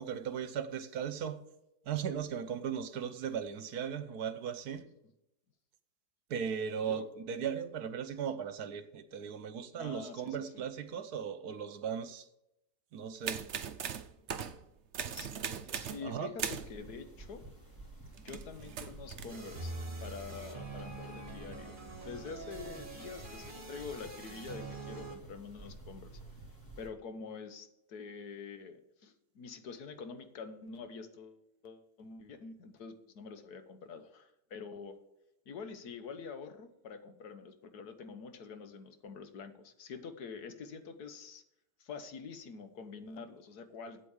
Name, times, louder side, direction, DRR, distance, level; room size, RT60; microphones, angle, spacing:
voice 1, 0.0-1.4 1.9-4.8 6.3-12.3 12.9-13.4 15.5-15.8 16.0-16.3, right 7 dB, 70° right, 1.4 m, -37 dB
voice 2, 6.8-7.1 9.7-10.6 15.1-15.3 15.7-17.4 18.2-19.7 20.0-26.2 26.8-35.0 35.5-41.4 41.8-44.1, left 5 dB, 70° left, 1.6 m, -46 dB
sound 1, 13.2-14.6 14.9-16.1 16.4-16.7 18.1-19.4, right 8 dB, 55° right, 0.9 m, -39 dB
sound 2, 16.4-26.9, right 2 dB, 10° left, 2.5 m, -52 dB
sound 3, 19.3-25.2, right 3 dB, 30° right, 1.8 m, -45 dB
8.4 x 8.3 x 7.2 m
omnidirectional pair, 1.7 m